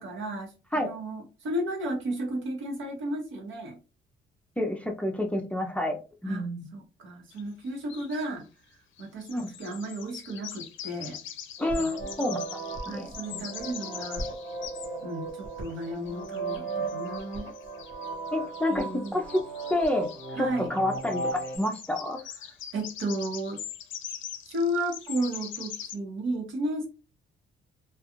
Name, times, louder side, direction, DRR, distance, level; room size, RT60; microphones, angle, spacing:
voice 1, 0.0-3.8 6.2-8.5 9.0-11.2 11.7-12.0 12.9-14.3 15.0-17.5 18.7-19.2 20.3-20.8 22.4-23.6 24.4-26.9, right 1 dB, 75° right, 1 dB, 1.1 m, -33 dB
voice 2, 4.6-6.6 9.3-9.5 11.6-12.4 12.9-13.1 18.3-19.2 19.7-20.1 20.4-22.2, left 1 dB, 5° left, 4 dB, 0.4 m, -29 dB
sound 1, 7.3-7.4 7.7-8.3 9.0-14.9 15.4-26.0, left 9 dB, 70° left, 0.5 m, -42 dB
sound 2, 11.6-21.6, right 3 dB, 50° right, 1.1 m, -36 dB
2.4 x 2.3 x 2.8 m, 0.32 s
cardioid pair, 90°, 20 cm